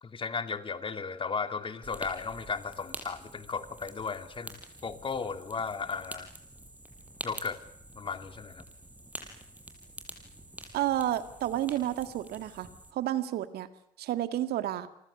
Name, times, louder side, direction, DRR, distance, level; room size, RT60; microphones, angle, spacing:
voice 1, 0.0-6.3 7.2-7.6 8.0-8.6, left 5 dB, 25° left, 8 dB, 2.2 m, -35 dB
Fire, 1.8-12.9, right 1 dB, 10° right, 6.0 m, -47 dB
voice 2, 10.7-13.7 14.0-14.9, right 12 dB, 50° right, 9 dB, 2.0 m, -31 dB
29.0 x 25.0 x 6.9 m, 0.76 s
hypercardioid pair, 65°, 20 cm